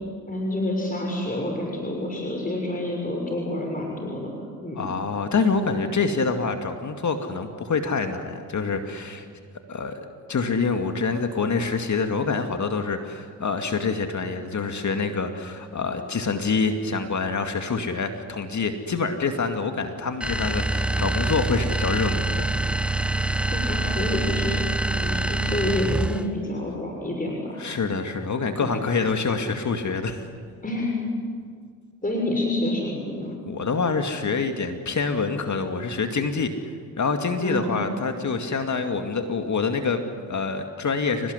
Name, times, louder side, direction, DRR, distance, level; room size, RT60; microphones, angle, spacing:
voice 1, 0.3-4.3 4.6-4.9 23.5-24.7 24.9-27.6 28.6-28.7 30.6-31.0 32.0-33.4 37.4-37.8, left 1 dB, 20° left, 0 dB, 6.7 m, -28 dB
voice 2, 4.7-9.3 9.7-10.0 10.3-22.5 27.6-30.3 33.5-36.5 37.0-41.3, left 4 dB, 40° left, 6 dB, 2.3 m, -26 dB
sound 1, 20.2-26.3, right 2 dB, 5° right, 1.1 m, -25 dB
28.5 x 19.0 x 9.9 m, 2.1 s
hypercardioid pair, 45°, 43 cm